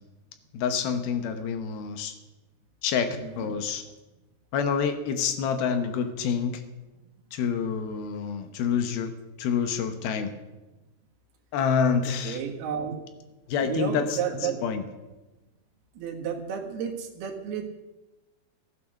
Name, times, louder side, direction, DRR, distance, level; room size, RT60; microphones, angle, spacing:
voice 1, 0.5-2.1 2.8-3.8 4.5-6.6 7.3-9.1 9.4-10.3 11.5-12.4 13.5-14.8, left 6 dB, 80° left, 8 dB, 2.9 m, -27 dB
voice 2, 3.2-3.6 12.0-13.0 13.6-14.6 16.0-17.7, right 8 dB, 85° right, 2 dB, 3.5 m, -32 dB
14.5 x 9.4 x 6.5 m, 1.1 s
omnidirectional pair, 4.4 m